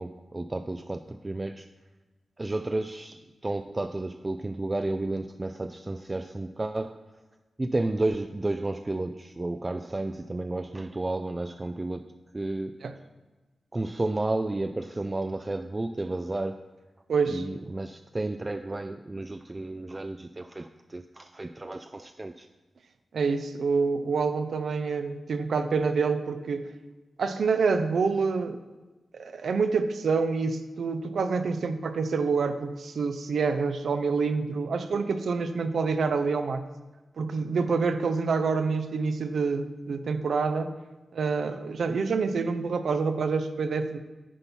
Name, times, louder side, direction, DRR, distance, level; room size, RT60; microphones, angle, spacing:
voice 1, 0.0-1.7 2.4-7.0 7.6-12.8 13.7-16.6 17.3-22.5, right 2 dB, 25° right, 8 dB, 0.3 m, -32 dB
voice 2, 17.1-17.4 23.1-26.7 27.2-28.6 29.1-36.6 37.2-40.7 41.1-44.0, right 4 dB, 80° right, 10 dB, 0.6 m, -27 dB
10.0 x 4.2 x 5.4 m, 1.2 s
wide cardioid pair, 80°, 0 cm